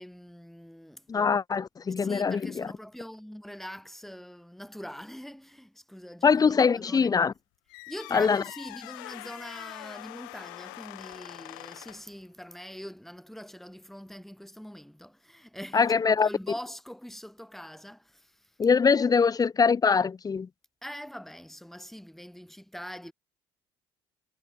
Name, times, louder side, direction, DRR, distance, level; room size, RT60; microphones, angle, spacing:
voice 1, 0.0-1.1 2.0-7.1 7.9-18.5 20.8-23.1, equal, ahead, 5.1 m, -43 dB
voice 2, 1.1-2.7 6.2-7.3 8.1-8.4 15.7-16.3 18.6-20.5, left 5 dB, 35° left, 1.6 m, -23 dB
sound 1, 7.7-12.2, left 32 dB, 85° left, 1.7 m, -44 dB
hypercardioid pair, 65°, 11 cm